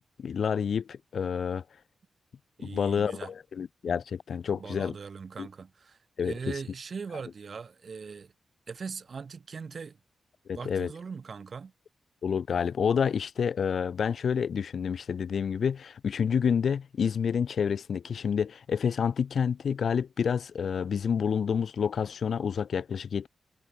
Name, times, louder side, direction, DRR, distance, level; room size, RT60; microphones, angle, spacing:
voice 1, 0.2-1.6 2.6-4.9 5.4-5.5 6.2-6.3 10.5-10.9 12.2-23.3, left 7 dB, 60° left, 4.1 m, -28 dB
voice 2, 2.6-3.3 4.5-6.0 6.2-8.3 8.7-10.0 10.5-11.7, right 5 dB, 40° right, 7.8 m, -40 dB
wide cardioid pair, 175°, 0 cm